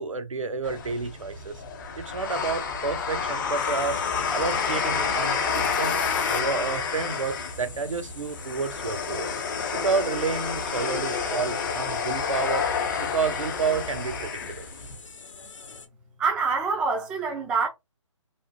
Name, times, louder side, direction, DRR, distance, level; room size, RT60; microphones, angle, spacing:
voice 1, 0.0-1.6 2.0-4.0 4.3-6.0 6.3-9.3 9.7-12.7 13.0-14.7, right 5 dB, 85° right, 0.6 m, -30 dB
sound 1, 0.6-14.9, left 6 dB, 40° left, 0.7 m, -29 dB
sound 2, 3.6-15.9, left 5 dB, 75° left, 0.7 m, -43 dB
voice 2, 16.2-17.7, right 4 dB, 5° right, 0.3 m, -25 dB
3.3 x 2.4 x 2.5 m
figure-of-eight pair, 145°, 16 cm